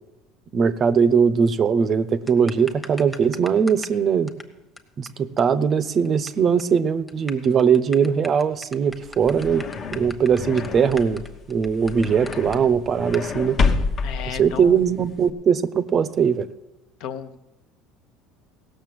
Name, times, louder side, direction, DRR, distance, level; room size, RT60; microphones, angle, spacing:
voice 1, 0.5-4.3 5.0-9.6 9.9-11.2 11.5-13.6 14.3-16.5, right 6 dB, 35° right, 15 dB, 0.6 m, -20 dB
sound 1, 2.3-4.0 4.3-4.4 4.8-4.9 5.1-5.2 5.4-5.5 5.7-6.3 6.6-6.7 7.1-12.6 13.1-13.3, left 2 dB, 10° left, 1.1 m, -39 dB
sound 2, 8.9-15.3, left 4 dB, 35° left, 0.9 m, -28 dB
voice 2, 14.0-14.8 17.0-17.4, left 8 dB, 65° left, 10 dB, 0.9 m, -34 dB
16.5 x 6.6 x 7.6 m, 0.96 s
supercardioid pair, 125°, 0 cm